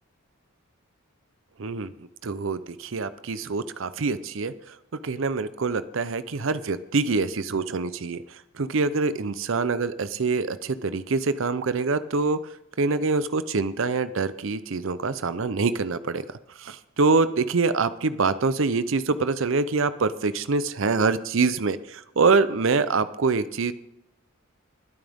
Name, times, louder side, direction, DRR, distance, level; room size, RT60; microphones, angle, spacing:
voice 1, 1.6-1.9 2.2-4.5 5.0-8.2 8.6-12.4 12.8-16.2 16.6-23.7, right 4 dB, 65° right, 13 dB, 0.6 m, -25 dB
21.0 x 9.0 x 3.6 m, 0.83 s
head